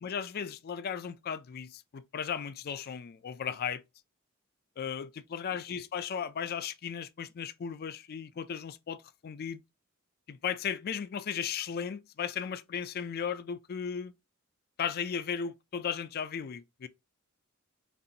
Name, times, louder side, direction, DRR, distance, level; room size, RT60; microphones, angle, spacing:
voice 1, 0.0-3.8 4.8-9.6 10.3-14.1 14.8-16.9, left 7 dB, 45° left, 0.4 m, -36 dB
5.2 x 2.5 x 2.8 m
head